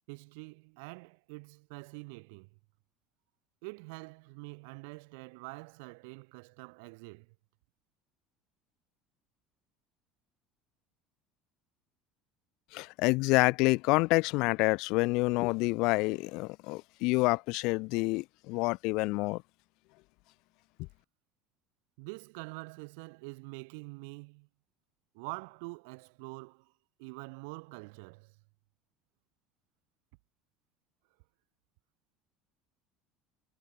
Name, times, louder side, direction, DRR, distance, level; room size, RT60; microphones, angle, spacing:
voice 1, 0.1-2.5 3.6-7.3 22.0-24.5 25.1-26.7 27.0-28.4, right 31 dB, 75° right, 5.0 m, -45 dB
voice 2, 12.7-19.4, left 25 dB, 55° left, 0.5 m, -28 dB
cardioid pair, 170°, 0 cm